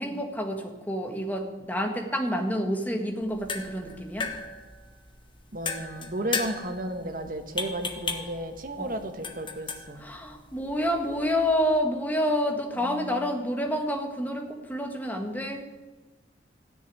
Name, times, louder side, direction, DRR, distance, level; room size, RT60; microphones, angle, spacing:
voice 1, 0.0-4.3 8.8-8.9 10.0-15.7, equal, 10° left, 3 dB, 1.7 m, -28 dB
sound 1, 3.2-11.8, left 4 dB, 30° left, 1.2 m, -37 dB
voice 2, 5.5-10.1 12.7-13.3, right 1 dB, 50° right, 6 dB, 1.5 m, -34 dB
16.0 x 7.1 x 9.5 m, 1.2 s
head